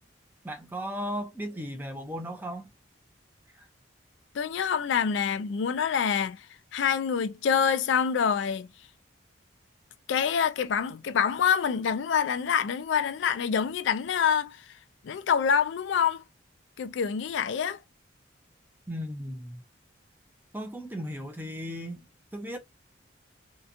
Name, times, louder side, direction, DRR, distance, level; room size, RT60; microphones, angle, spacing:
voice 1, 0.4-2.7 3.6-3.7 18.9-19.6 20.5-22.1 22.3-22.6, equal, 10° right, 0.5 m, -36 dB
voice 2, 4.3-6.4 6.7-8.7 10.1-14.6 15.0-16.2 16.8-17.8, left 7 dB, 70° left, 0.3 m, -26 dB
2.8 x 2.2 x 2.5 m
head